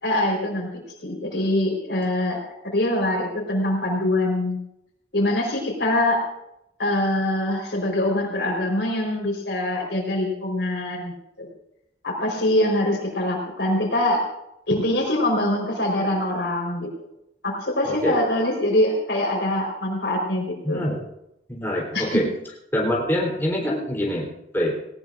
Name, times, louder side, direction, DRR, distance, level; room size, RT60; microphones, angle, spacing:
voice 1, 0.0-4.6 5.1-6.2 6.8-11.1 11.4-11.5 12.0-14.2 14.7-16.9 17.4-20.8 21.9-22.2, left 1 dB, 75° left, 1 dB, 4.1 m, -24 dB
voice 2, 20.6-21.0 21.5-22.3 22.7-24.3 24.5-24.7, equal, 15° left, -3 dB, 3.5 m, -24 dB
19.0 x 18.5 x 2.5 m, 0.82 s
head